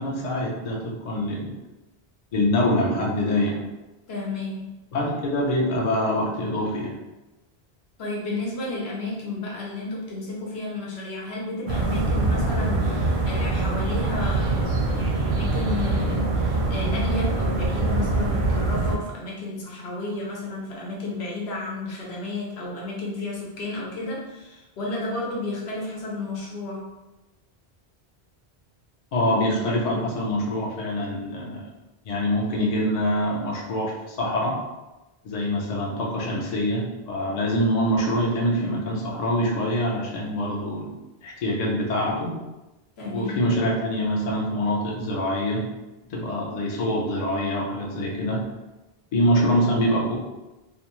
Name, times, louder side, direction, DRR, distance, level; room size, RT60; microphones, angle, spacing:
voice 1, 0.0-1.5 2.3-3.6 4.9-7.0 29.1-31.7 32.0-34.6 35.2-42.4 43.0-45.7 46.1-48.4 49.1-50.1, equal, 45° left, -3 dB, 0.6 m, -25 dB
voice 2, 4.1-4.7 8.0-26.9 43.0-43.4, left 2 dB, 80° left, -3 dB, 1.0 m, -32 dB
sound 1, 11.7-19.0, right 2 dB, 60° right, 0.6 m, -24 dB
2.5 x 2.2 x 3.0 m, 1.0 s
omnidirectional pair, 1.1 m